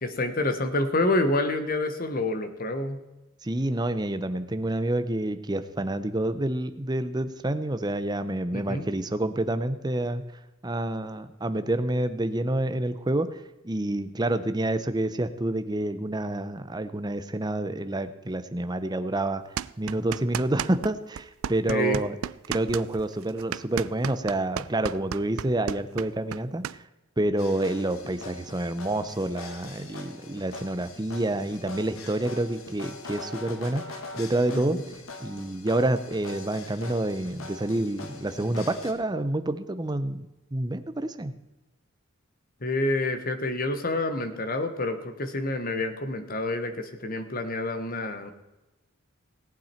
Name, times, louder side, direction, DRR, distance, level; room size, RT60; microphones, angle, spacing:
voice 1, 0.0-3.0 8.5-8.8 21.7-22.0 34.5-34.8 42.6-48.3, left 2 dB, 45° left, 8 dB, 1.3 m, -28 dB
voice 2, 3.4-10.2 10.6-19.4 19.8-22.2 22.5-26.7 27.2-34.8 35.2-41.3, right 1 dB, 20° right, 11 dB, 0.7 m, -28 dB
sound 1, 19.6-20.9 21.2-26.8, right 9 dB, 85° right, 0.4 m, -33 dB
sound 2, 27.4-38.9, left 3 dB, 85° left, 1.6 m, -43 dB
18.0 x 8.8 x 4.4 m, 1.0 s
head